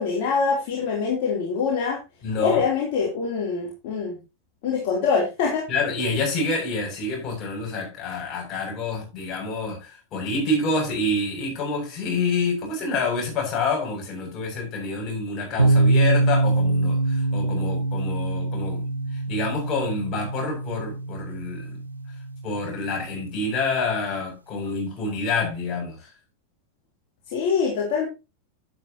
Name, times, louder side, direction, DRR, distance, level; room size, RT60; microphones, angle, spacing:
voice 1, 0.0-2.0 2.4-4.2 4.6-5.6 27.3-28.1, left 5 dB, 45° left, 3.5 m, -24 dB
voice 2, 2.2-2.6 5.7-18.8 19.3-21.8 22.4-26.1, left 3 dB, 30° left, 7.7 m, -27 dB
sound 1, 15.6-23.3, right 2 dB, 80° right, 1.1 m, -24 dB
11.5 x 10.0 x 3.1 m
figure-of-eight pair, 90°, 0 cm